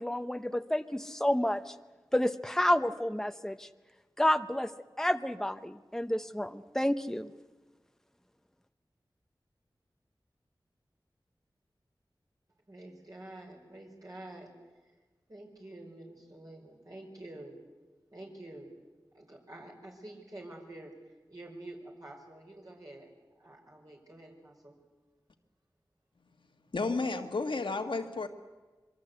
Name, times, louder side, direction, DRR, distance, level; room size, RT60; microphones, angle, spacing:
voice 1, 0.0-1.7 2.1-3.7 4.2-4.7 5.0-7.3, left 1 dB, 5° left, 9 dB, 1.0 m, -30 dB
voice 2, 12.7-14.5 14.8-15.0 15.3-17.6 18.1-18.8 19.1-23.1 23.4-24.8, right 1 dB, 45° right, -1 dB, 5.3 m, -48 dB
voice 3, 26.7-28.3, left 3 dB, 80° left, 6 dB, 1.8 m, -32 dB
25.5 x 22.5 x 8.1 m, 1.2 s
wide cardioid pair, 55°, 8 cm